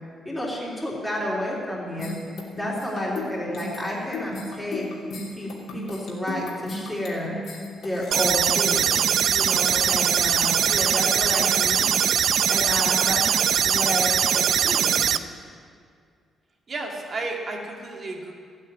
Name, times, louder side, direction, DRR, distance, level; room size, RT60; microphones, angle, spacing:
voice 1, 0.2-2.2 2.5-4.9 5.4-7.4 7.8-8.9 9.3-11.9 12.5-13.2 13.6-15.0, left 1 dB, 5° left, -7 dB, 3.4 m, -30 dB
sound 1, 2.0-8.2, left 2 dB, 70° left, 2.9 m, -35 dB
sound 2, 8.1-15.2, right 8 dB, 60° right, 0.5 m, -21 dB
voice 2, 16.7-18.3, right 2 dB, 35° right, 0 dB, 2.1 m, -32 dB
15.0 x 8.6 x 9.5 m, 2.2 s
cardioid pair, 155°, 0 cm